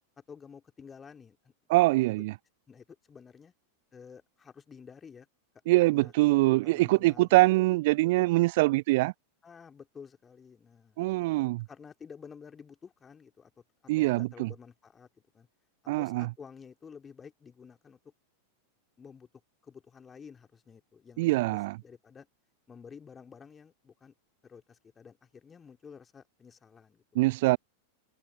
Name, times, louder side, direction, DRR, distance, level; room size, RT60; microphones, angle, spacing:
voice 1, 0.2-1.5 2.0-2.1 2.7-3.5 3.9-5.3 5.9-6.1 6.6-7.3 9.4-11.0 11.7-13.5 14.0-15.1 15.3-15.5 16.0-18.0 19.0-19.3 19.6-22.3 22.7-24.1 24.4-27.0, left 6 dB, 20° left, 3.0 m, -51 dB
voice 2, 1.7-2.3 5.7-9.1 11.0-11.6 13.9-14.5 15.9-16.3 21.2-21.8 27.2-27.6, right 21 dB, 50° right, 0.3 m, -24 dB
figure-of-eight pair, 90°, 0 cm